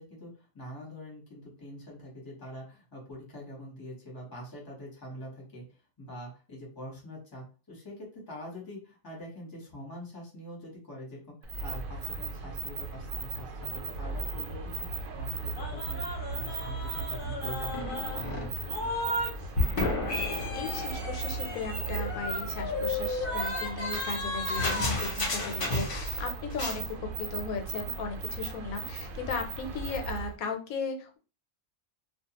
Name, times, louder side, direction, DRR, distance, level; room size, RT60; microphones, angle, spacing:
voice 1, 0.0-14.8 15.2-16.0 16.3-18.8, equal, 20° left, -2 dB, 0.9 m, -44 dB
sound 1, 11.4-30.3, right 4 dB, 80° right, 1.0 m, -37 dB
sound 2, 15.6-19.3 19.5-26.2 26.5-26.8, left 2 dB, 50° left, 0.8 m, -33 dB
voice 2, 19.7-31.2, left 4 dB, 85° left, 5 dB, 1.0 m, -37 dB
2.3 x 2.2 x 2.8 m, 0.35 s
omnidirectional pair, 1.4 m